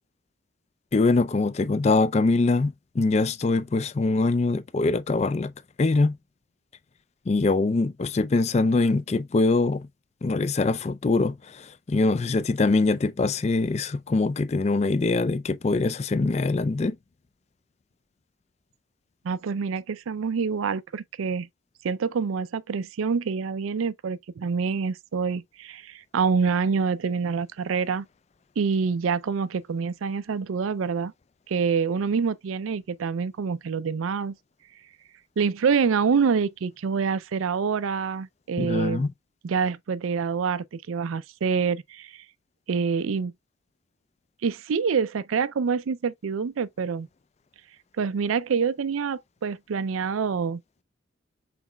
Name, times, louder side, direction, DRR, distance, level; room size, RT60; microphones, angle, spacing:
voice 1, 0.9-5.5 5.8-6.2 7.3-9.9 10.2-17.0 38.6-39.1, left 3 dB, 35° left, 0.4 m, -23 dB
voice 2, 19.2-21.5 21.8-28.1 28.6-31.1 31.5-34.4 35.4-39.1 39.4-42.2 42.7-43.3 44.4-47.1 48.0-50.6, right 5 dB, 85° right, 0.4 m, -26 dB
5.9 x 4.0 x 2.2 m
head